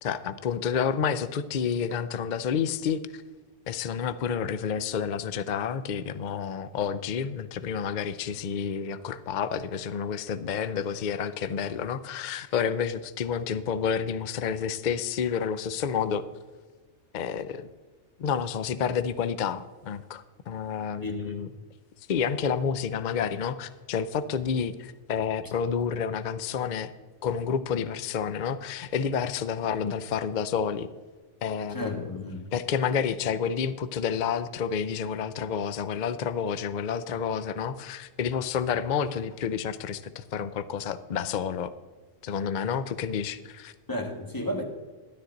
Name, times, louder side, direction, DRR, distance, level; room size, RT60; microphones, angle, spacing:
voice 1, 0.0-3.2 3.7-16.2 17.1-17.7 18.2-21.5 22.1-26.9 27.2-30.9 31.4-32.0 32.5-41.7 42.2-43.7, left 7 dB, 55° left, 13 dB, 0.5 m, -29 dB
voice 2, 21.0-21.5 31.7-32.5 43.9-44.6, left 1 dB, 15° left, 3 dB, 1.4 m, -33 dB
12.5 x 11.0 x 3.9 m, 1.3 s
omnidirectional pair, 1.3 m